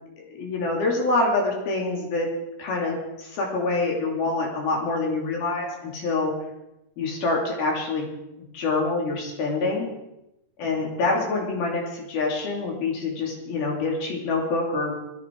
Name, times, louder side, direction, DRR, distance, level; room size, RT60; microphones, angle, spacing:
voice 1, 0.3-2.3 2.6-6.3 7.0-8.1 8.5-9.9 10.6-15.0, left 3 dB, 75° left, -1 dB, 4.7 m, -26 dB
20.0 x 14.5 x 4.6 m, 0.89 s
omnidirectional pair, 4.4 m